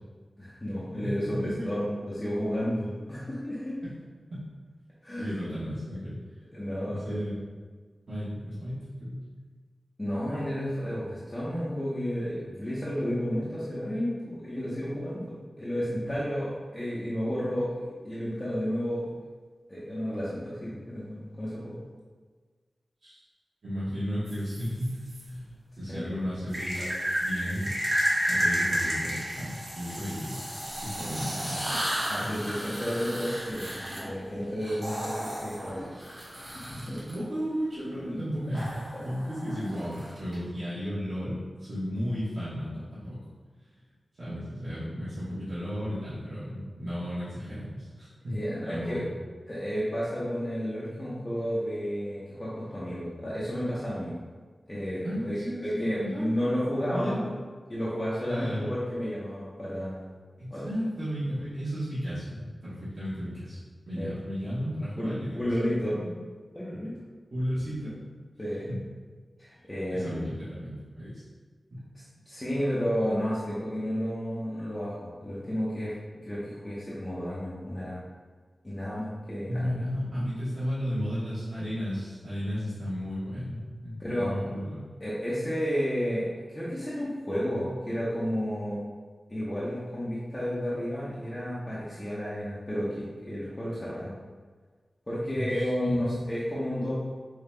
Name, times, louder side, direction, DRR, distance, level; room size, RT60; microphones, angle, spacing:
voice 1, 0.4-3.8 5.0-5.4 6.5-7.2 10.0-17.8 18.0-19.1 19.7-21.8 25.9-26.1 31.7-31.8 32.1-37.0 48.3-49.0 49.5-54.1 54.7-57.2 57.7-60.1 60.5-60.7 64.0-64.1 65.0-66.0 66.5-67.0 68.4-68.7 69.4-70.2 72.3-75.9 76.3-78.0 78.6-79.8 84.0-84.3 85.0-88.8 89.3-94.1 95.1-96.9, equal, 25° left, -9 dB, 0.8 m, -32 dB
voice 2, 1.0-1.5 3.8-3.9 4.3-4.4 5.2-6.2 6.9-7.3 8.1-9.3 23.0-23.2 23.6-26.9 27.2-28.0 28.3-30.4 30.7-31.9 36.9-43.2 44.2-48.4 48.7-49.0 55.0-56.3 56.9-57.3 58.3-58.7 60.4-63.6 63.9-65.5 65.9-66.1 67.3-67.9 68.7-68.8 69.9-71.2 71.7-71.8 79.5-84.8 95.3-96.1, equal, 70° right, -13 dB, 1.2 m, -34 dB
sound 1, 24.3-25.2 26.5-37.1 38.5-40.4, equal, 35° right, 1.1 m, -32 dB
5.1 x 2.8 x 2.2 m, 1.5 s
wide cardioid pair, 90°, 0 cm